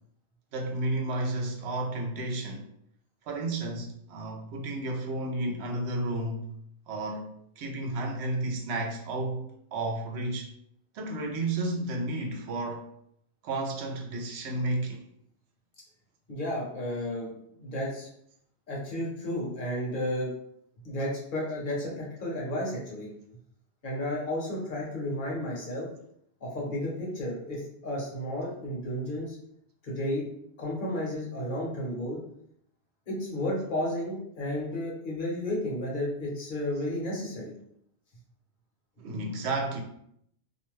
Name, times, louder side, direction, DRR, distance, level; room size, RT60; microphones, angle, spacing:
voice 1, 0.5-2.6 3.3-6.5 6.9-10.5 10.9-12.9 13.4-15.0 39.0-39.8, right 2 dB, 75° right, 0.8 m, -32 dB
voice 2, 16.3-18.1 18.7-20.3 20.8-23.1 23.8-25.9 26.4-29.4 29.8-30.3 30.6-32.2 33.1-37.5, left 1 dB, 50° left, 1.0 m, -32 dB
2.5 x 2.1 x 3.1 m
omnidirectional pair, 1.2 m